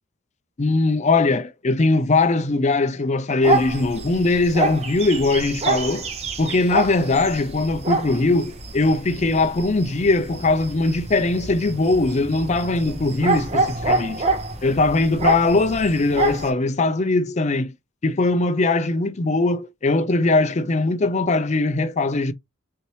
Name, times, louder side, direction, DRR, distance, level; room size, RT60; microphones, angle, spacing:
voice 1, 0.6-6.1 6.4-14.2 14.6-17.7 18.0-22.3, left 3 dB, 35° left, 0.5 m, -20 dB
sound 1, 3.4-16.5, right 3 dB, 30° right, 0.7 m, -27 dB
4.2 x 2.7 x 3.1 m
head